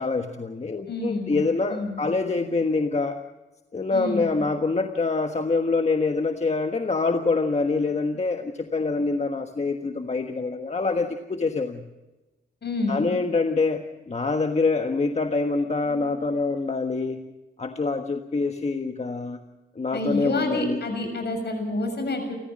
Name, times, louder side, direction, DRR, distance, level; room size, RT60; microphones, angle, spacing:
voice 1, 0.0-3.2 3.7-11.9 12.9-17.3 17.6-19.4 19.7-20.8, left 3 dB, 35° left, 5 dB, 1.4 m, -25 dB
voice 2, 0.9-2.0 3.9-4.4 12.6-13.1 19.9-22.3, left 2 dB, 60° left, 5 dB, 7.0 m, -28 dB
29.5 x 14.5 x 6.3 m, 1.1 s
wide cardioid pair, 100°, 19 cm